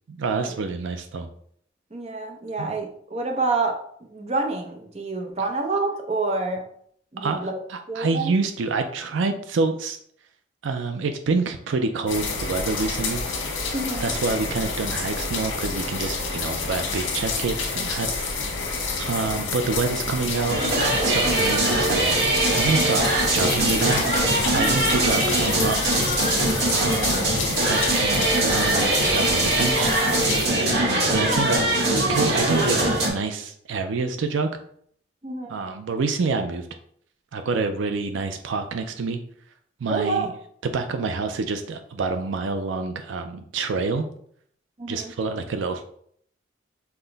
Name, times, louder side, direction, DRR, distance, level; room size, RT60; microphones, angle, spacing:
voice 1, 0.1-1.3 2.6-2.7 7.2-7.4 7.7-10.0 10.6-13.2 14.0-18.7 19.0-20.6 20.9-24.0 24.5-25.8 26.6-30.1 30.5-34.5 35.5-36.7 37.3-39.2 39.8-40.3 40.6-44.1 44.9-45.8, right 4 dB, 80° right, 7 dB, 0.4 m, -27 dB
voice 2, 1.9-3.8 4.1-6.6 7.1-7.6 7.9-8.3 13.7-14.1 24.5-24.9 35.2-35.5 39.9-40.3 44.8-45.1, right 3 dB, 35° right, 2 dB, 0.6 m, -27 dB
sound 1, 12.1-30.5, left 4 dB, 85° left, 1.1 m, -29 dB
sound 2, 20.5-33.1, right 2 dB, 55° right, 1.1 m, -22 dB
5.8 x 2.1 x 3.9 m, 0.64 s
head